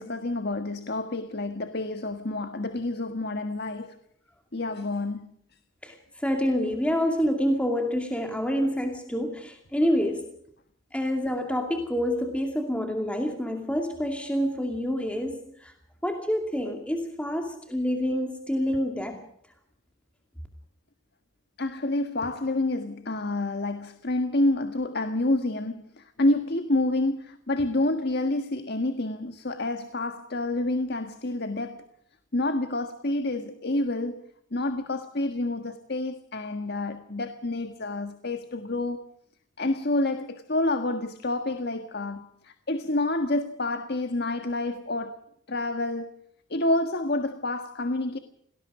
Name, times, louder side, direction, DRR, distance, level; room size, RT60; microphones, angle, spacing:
voice 1, 0.0-4.0 4.5-5.3 21.6-31.8 32.3-34.2 34.5-39.1 39.6-45.2 45.5-46.1 46.5-48.2, left 2 dB, 50° left, 1.6 m, -28 dB
voice 2, 5.8-10.3 10.9-15.7 16.0-19.2, equal, 5° left, 2.5 m, -27 dB
29.0 x 19.5 x 5.0 m
head